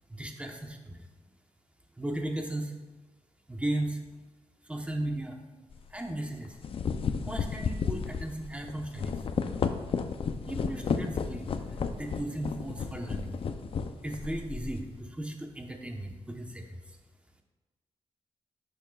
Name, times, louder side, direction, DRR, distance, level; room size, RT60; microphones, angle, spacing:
voice 1, 0.1-1.0 2.0-2.7 3.5-4.0 4.7-5.4 5.9-6.6 7.2-9.2 10.5-11.6 11.9-13.4 14.0-17.0, right 1 dB, 10° right, 3 dB, 1.0 m, -36 dB
sound 1, 5.7-5.9 6.4-14.9, left 6 dB, 55° left, 0.5 m, -33 dB
11.5 x 6.6 x 2.4 m, 1.2 s
cardioid pair, 95°, 11 cm